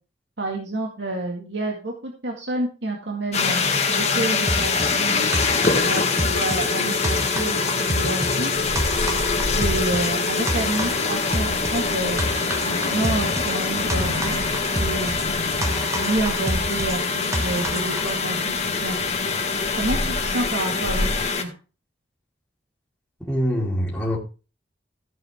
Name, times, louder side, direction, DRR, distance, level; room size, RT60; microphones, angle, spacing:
voice 1, 0.4-3.6 4.0-5.3 5.8-8.5 9.5-12.2 12.6-14.4 14.8-15.1 15.9-19.0 19.8-21.5, right 2 dB, 75° right, 2.0 m, -29 dB
sound 1, 3.3-21.4, left 4 dB, 35° left, 1.6 m, -24 dB
sound 2, 4.5-18.2, right 1 dB, 15° right, 1.1 m, -30 dB
sound 3, 8.5-21.3, left 1 dB, 70° left, 1.7 m, -33 dB
voice 2, 23.2-24.2, equal, 5° left, 2.6 m, -24 dB
14.5 x 7.6 x 3.6 m
head